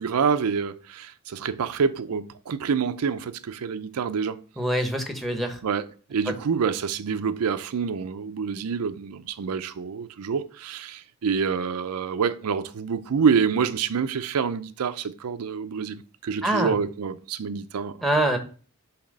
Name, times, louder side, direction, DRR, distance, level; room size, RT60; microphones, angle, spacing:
voice 1, 0.0-4.4 5.6-18.0, right 6 dB, 85° right, 0.5 m, -27 dB
voice 2, 4.6-5.6 16.4-16.7 18.0-18.4, right 1 dB, ahead, 0.9 m, -24 dB
7.1 x 2.9 x 5.3 m
head